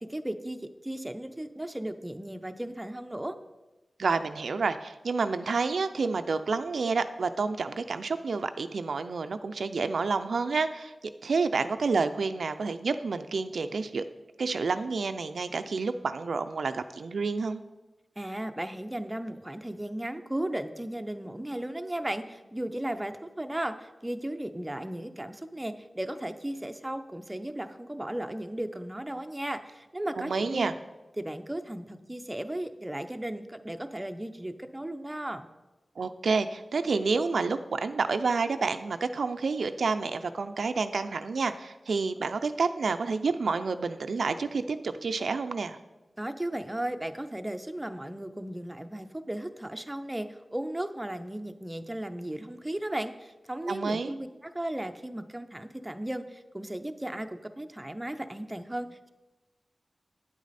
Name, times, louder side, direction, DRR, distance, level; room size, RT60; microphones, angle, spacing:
voice 1, 0.0-3.3 18.2-30.7 31.2-35.5 46.2-59.1, right 1 dB, 15° right, 7 dB, 0.5 m, -35 dB
voice 2, 4.0-10.9 11.2-14.0 14.4-17.6 30.2-30.7 36.0-45.8 53.7-54.1, right 4 dB, 80° right, 9 dB, 0.4 m, -29 dB
9.5 x 8.3 x 4.1 m, 1.1 s
wide cardioid pair, 80°, 0 cm